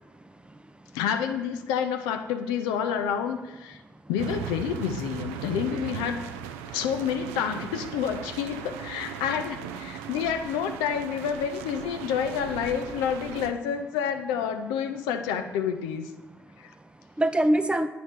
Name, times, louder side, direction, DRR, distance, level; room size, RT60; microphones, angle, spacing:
voice 1, 0.1-0.9 6.7-6.8 16.5-17.9, right 1 dB, 15° right, 11 dB, 0.5 m, -27 dB
voice 2, 0.9-3.8 4.1-6.3 6.7-16.1 16.6-16.7, left 8 dB, 75° left, 6 dB, 0.6 m, -29 dB
sound 1, 4.2-13.5, right 9 dB, 75° right, 0.4 m, -38 dB
9.1 x 3.1 x 5.8 m, 1.1 s
figure-of-eight pair, 40°, 8 cm